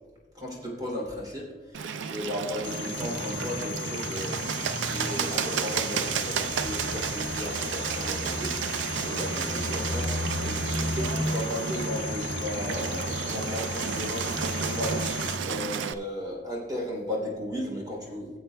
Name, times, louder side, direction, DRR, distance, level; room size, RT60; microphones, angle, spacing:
voice 1, 0.3-10.1 10.4-18.4, equal, 25° right, -3 dB, 2.9 m, -35 dB
Bird, 1.7-15.9, right 7 dB, 85° right, 0.4 m, -32 dB
sound 1, 2.6-15.4, left 3 dB, 45° left, 1.3 m, -34 dB
21.0 x 7.5 x 2.2 m, 1.4 s
head